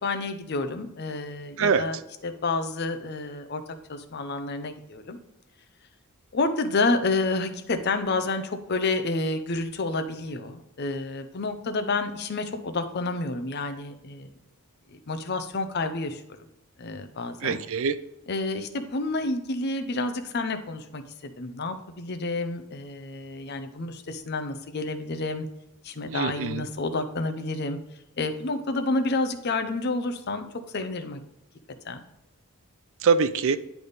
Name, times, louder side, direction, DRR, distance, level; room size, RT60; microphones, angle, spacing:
voice 1, 0.0-3.6 3.9-5.2 6.3-14.3 14.9-16.2 16.8-17.6 18.3-25.5 25.8-27.8 28.2-30.5 30.7-31.2 31.8-32.0, left 3 dB, 50° left, 7 dB, 0.6 m, -29 dB
voice 2, 17.4-18.0 26.1-26.6 33.0-33.6, right 5 dB, 60° right, 12 dB, 0.4 m, -23 dB
10.0 x 3.5 x 4.0 m, 0.88 s
head